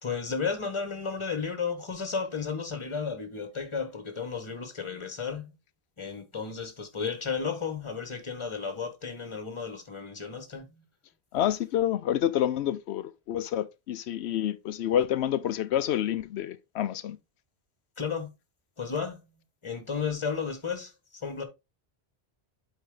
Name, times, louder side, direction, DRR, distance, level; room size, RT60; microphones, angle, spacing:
voice 1, 0.0-5.5 6.0-10.7 18.0-18.3 18.8-19.2 19.6-21.4, left 5 dB, 30° left, 1.4 m, -33 dB
voice 2, 11.3-17.2, left 11 dB, 90° left, 0.9 m, -28 dB
8.3 x 4.2 x 3.8 m
omnidirectional pair, 1.1 m